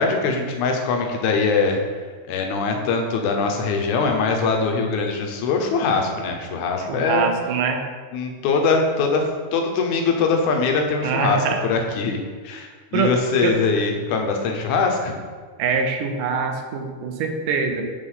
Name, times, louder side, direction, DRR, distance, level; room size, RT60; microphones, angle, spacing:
voice 1, 0.0-1.8 2.3-7.3 8.1-15.1, left 4 dB, 75° left, 3 dB, 2.2 m, -22 dB
voice 2, 6.9-7.8 11.0-11.7 12.9-13.1 13.4-13.6 15.6-17.8, right 5 dB, 80° right, 5 dB, 2.4 m, -24 dB
6.3 x 4.9 x 5.6 m, 1.5 s
omnidirectional pair, 3.7 m